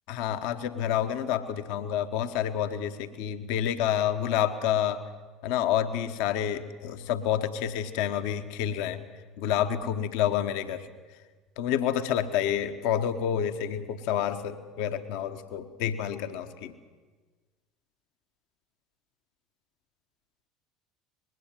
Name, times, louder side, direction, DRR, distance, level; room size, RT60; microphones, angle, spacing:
voice 1, 0.1-5.0 5.4-9.0 9.4-10.9 11.6-16.7, left 10 dB, 60° left, 9 dB, 1.1 m, -28 dB
20.5 x 17.0 x 7.7 m, 1.4 s
figure-of-eight pair, 65°, 0 cm